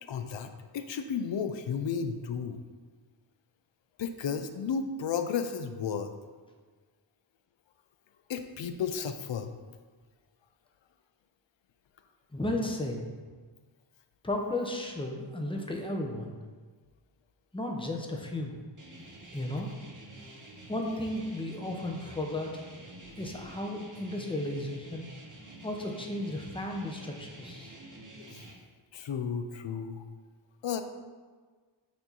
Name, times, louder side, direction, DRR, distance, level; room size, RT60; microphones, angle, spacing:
voice 1, 0.0-2.6 4.0-6.1 8.3-9.5 28.2-28.4 28.9-30.1 30.6-30.8, left 6 dB, 70° left, 8 dB, 0.6 m, -33 dB
voice 2, 12.3-13.0 14.2-16.3 17.5-18.6 19.3-19.7 20.7-22.6 23.2-25.1 25.6-27.7, left 1 dB, 10° left, 1 dB, 0.7 m, -34 dB
sound 1, 18.8-28.5, right 1 dB, 40° right, 1.1 m, -49 dB
8.3 x 2.9 x 3.9 m, 1.5 s
wide cardioid pair, 85°, 46 cm